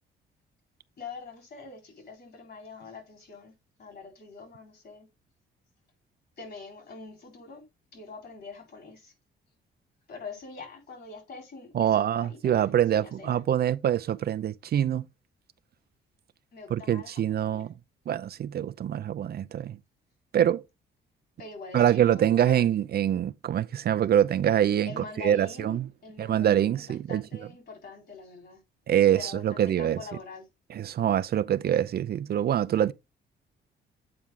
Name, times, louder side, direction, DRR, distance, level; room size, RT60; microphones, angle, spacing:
voice 1, 1.0-3.5 3.8-5.1 6.4-7.6 7.9-9.1 10.1-13.4 16.5-17.7 21.4-22.7 24.8-28.6 29.1-30.5, left 4 dB, 55° left, 4.3 m, -44 dB
voice 2, 11.7-15.0 16.7-17.7 18.1-19.8 20.3-20.6 21.7-25.9 26.2-27.2 28.9-30.0 30.7-32.9, right 10 dB, 50° right, 0.5 m, -25 dB
8.6 x 4.5 x 3.8 m
cardioid pair, 90°, 20 cm